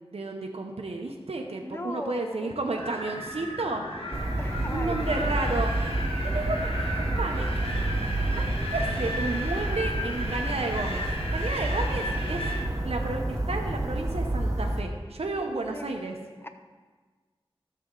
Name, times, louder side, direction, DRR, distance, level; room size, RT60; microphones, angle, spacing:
voice 1, 0.1-3.8 4.7-5.7 6.2-7.5 8.3-8.4 8.7-11.0 11.3-12.4 12.8-16.1, right 2 dB, 85° right, 2 dB, 0.7 m, -32 dB
voice 2, 1.6-2.6 4.4-5.3 15.4-15.9 16.4-16.5, left 1 dB, 25° left, 8 dB, 0.6 m, -38 dB
Wind, 2.7-12.7, equal, 70° left, 1.4 m, -34 dB
sound 1, 4.1-14.8, right 1 dB, 35° right, 0.9 m, -29 dB
13.0 x 6.7 x 3.7 m, 1.4 s
wide cardioid pair, 60°, 10 cm